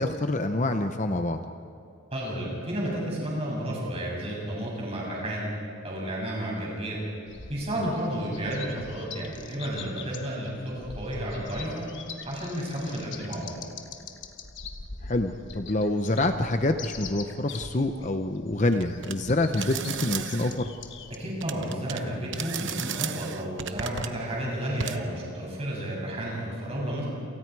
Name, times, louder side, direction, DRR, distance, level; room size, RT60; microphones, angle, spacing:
voice 1, 0.0-1.4 7.8-7.9 15.0-20.7, left 2 dB, 35° left, 7 dB, 0.8 m, -26 dB
voice 2, 2.1-5.5 5.8-7.0 7.5-11.9 12.3-13.6 21.1-27.0, right 1 dB, 30° right, -3 dB, 7.1 m, -32 dB
sound 1, 7.3-21.2, left 5 dB, 55° left, 1.3 m, -43 dB
sound 2, 18.7-19.1 19.5-20.6 21.4-22.0 22.3-24.2 24.8-25.0, right 8 dB, 60° right, 0.9 m, -34 dB
28.5 x 28.5 x 4.8 m, 2.5 s
head